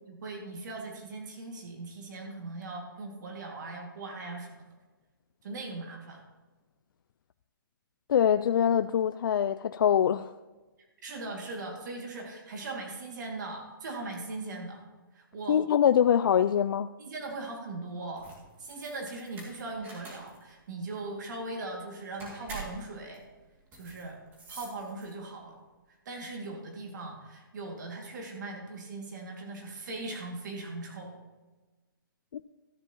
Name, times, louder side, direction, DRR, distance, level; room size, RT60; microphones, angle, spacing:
voice 1, 0.0-4.7 5.4-6.2 11.0-14.8 15.1-15.6 17.0-18.3 18.6-23.2 23.7-24.2 24.5-25.6 26.1-31.2, right 2 dB, 55° right, 1 dB, 2.3 m, -39 dB
voice 2, 8.1-10.3 15.5-16.9, left 9 dB, 65° left, 11 dB, 0.4 m, -24 dB
sound 1, 18.1-25.4, right 2 dB, 15° right, 2.3 m, -47 dB
13.5 x 9.4 x 3.0 m, 1.2 s
hypercardioid pair, 160°, 12 cm